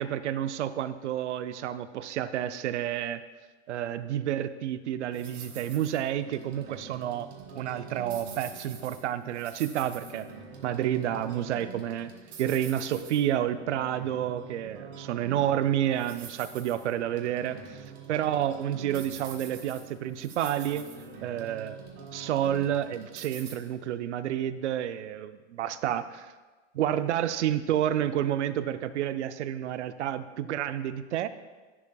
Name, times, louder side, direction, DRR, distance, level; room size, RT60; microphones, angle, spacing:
voice 1, 0.0-3.2 3.7-7.3 7.6-10.3 10.6-12.1 12.4-20.9 21.2-21.8 22.1-26.3 26.7-31.3, right 11 dB, 85° right, 12 dB, 0.6 m, -30 dB
sound 1, 5.1-23.5, right 4 dB, 45° right, 2.5 m, -45 dB
12.5 x 7.1 x 2.3 m, 1.3 s
hypercardioid pair, 120°, 34 cm